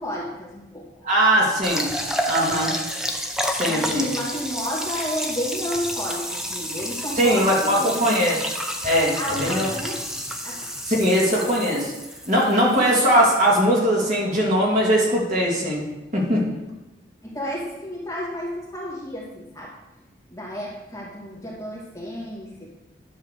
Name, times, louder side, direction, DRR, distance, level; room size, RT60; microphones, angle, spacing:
voice 1, 0.0-1.0 3.6-8.0 9.1-10.0 10.4-10.7 17.2-19.7 20.3-22.7, equal, 15° left, -6 dB, 2.1 m, -31 dB
voice 2, 1.0-1.9 2.3-2.7 3.5-4.1 7.2-8.4 8.8-9.7 10.8-11.9 12.3-15.8 16.1-16.4, equal, 40° right, -4 dB, 2.2 m, -20 dB
sound 1, 1.6-13.5, equal, 5° right, 0.6 m, -30 dB
10.5 x 3.7 x 6.6 m, 1.0 s
head